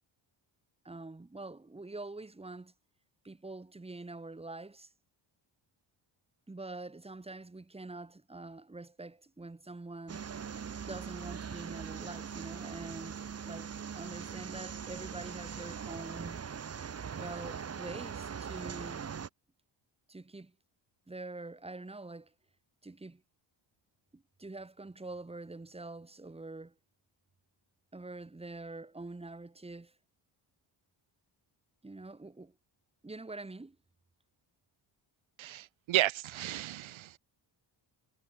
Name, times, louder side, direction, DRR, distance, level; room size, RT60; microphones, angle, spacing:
voice 1, 0.8-2.7 3.2-4.9 6.5-10.3 10.9-16.4 17.2-19.1 20.1-20.5 21.1-22.3 22.8-23.2 24.1-26.7 27.9-29.9 31.8-32.5 33.0-33.8, right 2 dB, 10° right, 5.9 m, -45 dB
sound 1, 10.1-19.3, right 7 dB, 30° right, 2.0 m, -41 dB
voice 2, 35.4-37.2, right 14 dB, 75° right, 1.6 m, -32 dB
wide cardioid pair, 180°, 47 cm